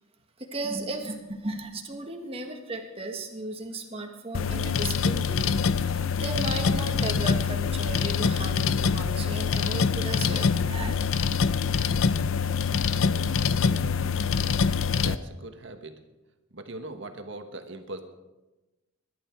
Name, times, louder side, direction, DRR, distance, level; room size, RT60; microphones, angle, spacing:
voice 1, 0.4-11.4, right 2 dB, 25° right, 3 dB, 1.7 m, -36 dB
sound 1, 4.3-15.2, left 5 dB, 70° left, 0.6 m, -25 dB
voice 2, 11.6-11.9 13.1-13.3 14.9-16.0 16.5-18.0, right 2 dB, 55° right, 6 dB, 1.4 m, -41 dB
21.0 x 11.5 x 4.6 m, 1.1 s
head